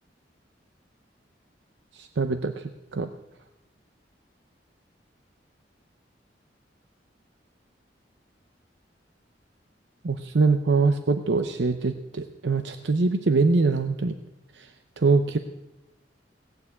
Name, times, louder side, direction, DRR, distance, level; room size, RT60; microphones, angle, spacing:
voice 1, 1.9-3.1 10.0-14.1 14.6-14.7 15.0-15.4, right 4 dB, 80° right, 9 dB, 0.6 m, -23 dB
17.5 x 6.8 x 8.4 m, 1.0 s
head